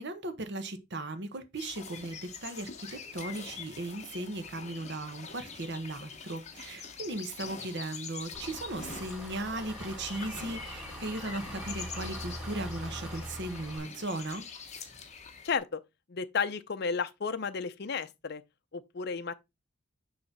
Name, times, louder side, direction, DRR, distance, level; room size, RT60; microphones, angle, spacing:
voice 1, 0.0-14.4, right 2 dB, 60° right, 1.1 m, -37 dB
sound 1, 1.6-15.6, left 5 dB, 35° left, 1.0 m, -45 dB
Engine, 8.3-13.8, equal, 5° right, 2.5 m, -42 dB
voice 2, 15.4-15.8 16.1-18.4 18.7-19.3, left 5 dB, 55° left, 0.6 m, -33 dB
6.7 x 3.2 x 6.0 m
head